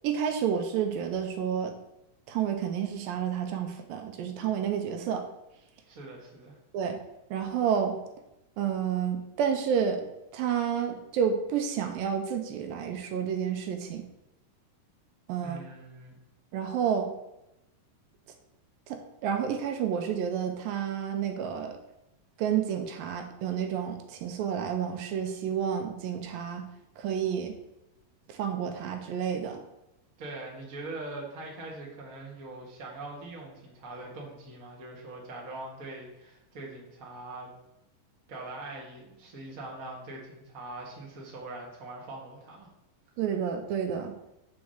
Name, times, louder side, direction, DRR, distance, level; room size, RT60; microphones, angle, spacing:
voice 1, 0.0-1.7 2.3-5.2 6.7-7.0 7.3-8.0 8.6-10.1 10.3-14.0 15.3-15.6 16.5-17.1 18.9-21.8 22.4-26.7 27.0-27.6 28.3-29.6 43.2-44.1, right 8 dB, 80° right, 6 dB, 2.3 m, -30 dB
voice 2, 5.9-6.6 15.4-16.2 30.2-37.5 38.3-42.7, right 2 dB, 60° right, -2 dB, 0.8 m, -42 dB
5.3 x 4.7 x 6.3 m, 0.89 s
omnidirectional pair, 4.2 m